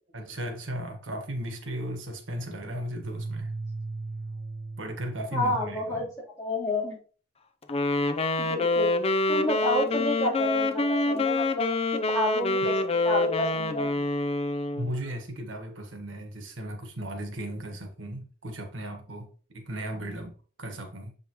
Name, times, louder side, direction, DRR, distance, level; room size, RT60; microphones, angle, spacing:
voice 1, 0.1-3.5 4.8-6.1 12.6-12.7 14.8-19.3 19.5-21.1, right 1 dB, 90° right, 1.5 m, -36 dB
sound 1, 3.0-5.5, right 3 dB, 45° right, 0.3 m, -36 dB
voice 2, 5.3-6.1 6.4-7.0 8.4-8.9 9.3-12.8 13.0-13.9, left 1 dB, 15° left, 3.6 m, -29 dB
Wind instrument woodwind instrument, 7.7-14.9, left 2 dB, 30° left, 0.6 m, -26 dB
7.3 x 5.3 x 3.1 m
head